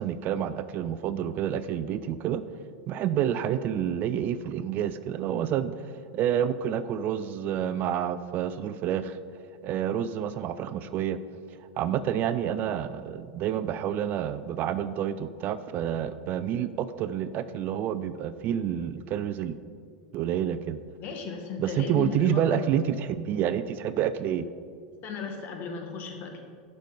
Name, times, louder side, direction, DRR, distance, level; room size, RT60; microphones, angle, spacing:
voice 1, 0.0-2.4 2.9-5.7 6.1-9.2 9.6-11.2 11.8-19.6 20.1-20.8 21.6-24.5, right 9 dB, 45° right, 13 dB, 0.4 m, -28 dB
voice 2, 21.0-22.6 25.0-26.4, left 5 dB, 45° left, 4 dB, 1.6 m, -35 dB
11.5 x 5.4 x 4.9 m, 2.1 s
hypercardioid pair, 90°, 4 cm